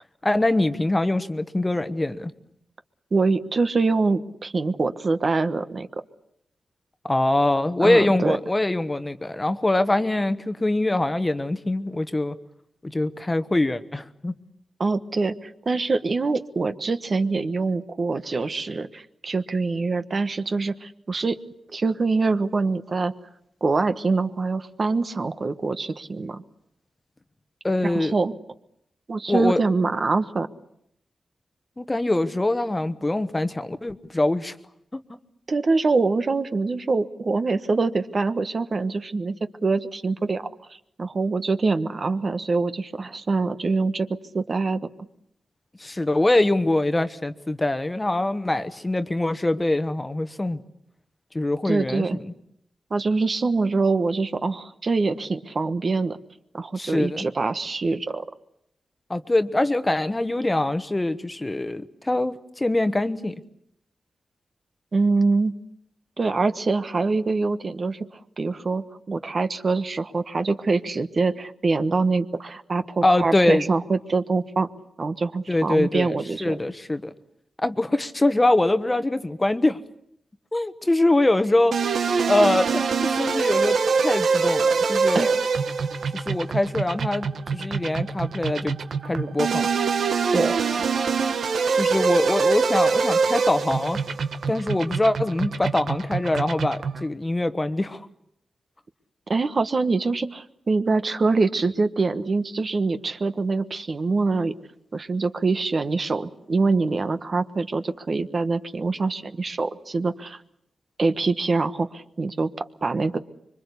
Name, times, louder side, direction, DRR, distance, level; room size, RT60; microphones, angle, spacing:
voice 1, 0.2-2.3 7.0-12.3 12.8-14.3 27.6-28.1 29.3-29.6 31.8-34.6 34.9-35.0 45.8-50.6 51.3-52.2 56.8-57.2 59.1-63.4 73.0-73.6 75.5-77.1 77.6-79.8 80.5-81.8 82.3-85.4 86.1-88.8 89.0-89.7 91.7-94.0 94.5-98.1, left 2 dB, 20° left, 11 dB, 1.2 m, -23 dB
voice 2, 3.1-5.9 7.8-8.4 14.8-21.4 21.7-23.1 23.6-26.4 27.8-28.3 29.1-30.5 35.5-39.4 39.6-40.4 41.0-44.1 44.3-44.8 51.6-52.2 52.9-56.2 56.5-58.2 64.9-65.5 66.2-74.7 75.0-76.6 85.1-85.3 90.3-90.6 99.3-104.5 104.9-110.4 111.0-113.2, right 3 dB, 45° right, 10 dB, 1.2 m, -24 dB
sound 1, 81.7-97.1, right 5 dB, 80° right, 1.4 m, -24 dB
25.5 x 24.0 x 8.3 m, 0.74 s
wide cardioid pair, 100°, 0 cm